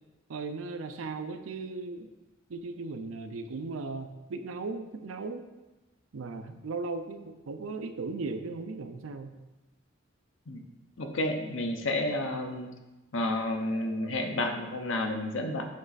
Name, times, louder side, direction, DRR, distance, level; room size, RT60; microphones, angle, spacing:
voice 1, 0.3-2.1 2.5-5.5 6.1-9.3, right 3 dB, 85° right, 8 dB, 0.5 m, -37 dB
voice 2, 11.0-12.7 13.1-15.6, left 1 dB, 65° left, 4 dB, 0.7 m, -30 dB
7.3 x 3.3 x 4.0 m, 1.1 s
head